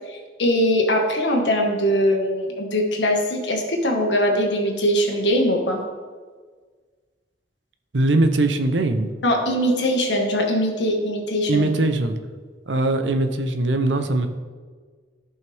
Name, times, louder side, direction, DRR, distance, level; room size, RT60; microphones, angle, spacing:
voice 1, 0.1-5.8 9.2-11.7, equal, 80° left, 1 dB, 1.6 m, -21 dB
voice 2, 7.9-9.1 11.5-12.2 12.7-14.3, right 2 dB, 85° right, 8 dB, 0.8 m, -21 dB
14.5 x 5.6 x 3.5 m, 1.5 s
head